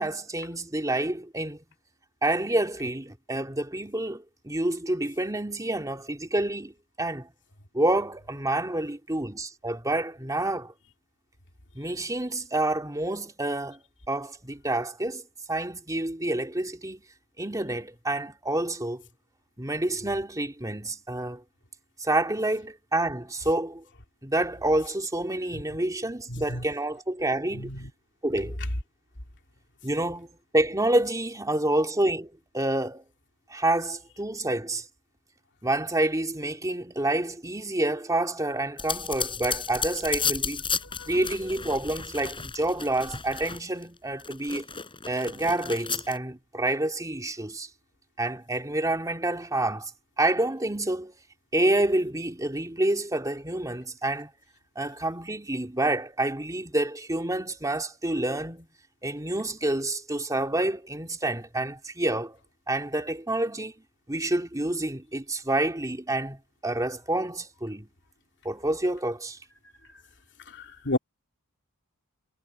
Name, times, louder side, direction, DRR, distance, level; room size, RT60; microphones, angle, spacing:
voice 1, 0.0-1.6 2.2-7.3 7.7-10.7 11.7-13.8 14.1-15.2 15.5-17.0 17.4-19.0 19.6-21.4 22.0-23.8 24.2-27.7 28.2-28.6 29.8-30.3 30.5-33.0 33.5-34.8 35.6-40.6 41.1-44.6 45.1-47.7 48.2-49.9 50.2-51.1 51.5-54.3 54.7-58.7 59.0-62.4 62.7-63.7 64.1-67.9 68.4-69.4, right 1 dB, 15° right, 3.0 m, -28 dB
voice 2, 26.3-26.6 27.5-27.9 41.0-41.2 70.5-71.0, left 1 dB, 55° left, 2.7 m, -32 dB
sound 1, 38.8-43.8 44.2-46.2, left 6 dB, 25° left, 4.6 m, -33 dB
head